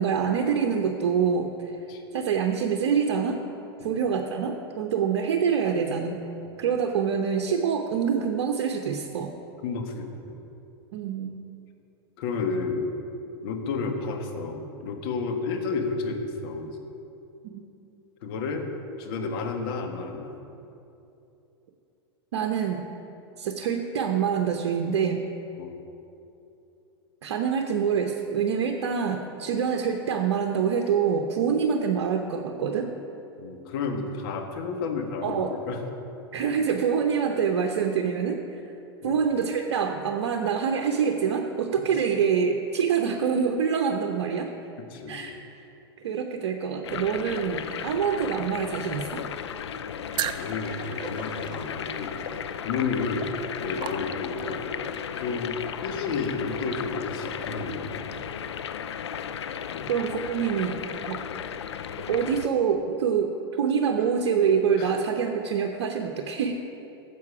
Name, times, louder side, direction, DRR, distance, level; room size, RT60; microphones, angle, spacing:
voice 1, 0.0-1.7 2.1-3.4 3.8-6.2 6.6-9.3 10.9-11.3 17.5-17.6 22.3-22.8 23.4-25.2 27.2-32.9 35.2-35.5 36.3-38.6 39.0-44.5 45.1-45.4 46.0-49.2 59.9-60.8 61.1-61.2 62.1-66.5, right 7 dB, 70° right, 3 dB, 0.8 m, -26 dB
voice 2, 9.6-10.4 12.2-12.9 13.4-16.8 18.2-18.7 19.0-20.4 25.6-25.8 33.4-35.8 39.0-39.1 44.9-45.3 50.4-52.2 52.6-53.3 53.6-54.7 55.2-57.9 59.7-59.9 64.8-64.9, left 4 dB, 60° left, 4 dB, 1.6 m, -31 dB
sound 1, 46.8-62.5, left 8 dB, 80° left, 0.5 m, -35 dB
sound 2, 50.1-54.6, right 10 dB, 35° right, 0.6 m, -37 dB
13.0 x 7.8 x 4.8 m, 2.8 s
hypercardioid pair, 105°, 14 cm